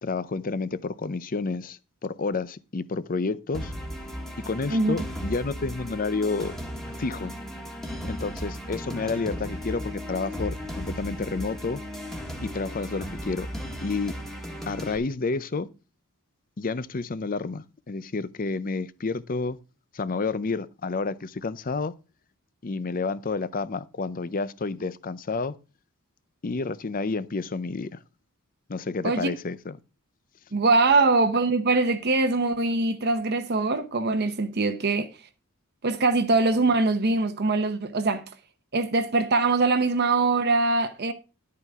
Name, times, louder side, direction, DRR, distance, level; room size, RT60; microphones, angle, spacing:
voice 1, 0.0-3.7 4.4-6.6 7.0-7.3 8.0-11.8 12.4-13.5 13.8-14.2 14.7-15.7 16.6-19.6 19.9-21.9 22.6-25.5 26.4-28.0 28.7-29.8, left 4 dB, 40° left, 0.6 m, -30 dB
sound 1, 3.5-15.0, equal, ahead, 1.6 m, -36 dB
voice 2, 30.5-35.1 35.8-38.2 38.7-41.1, right 3 dB, 50° right, 0.9 m, -23 dB
11.0 x 8.6 x 3.6 m
head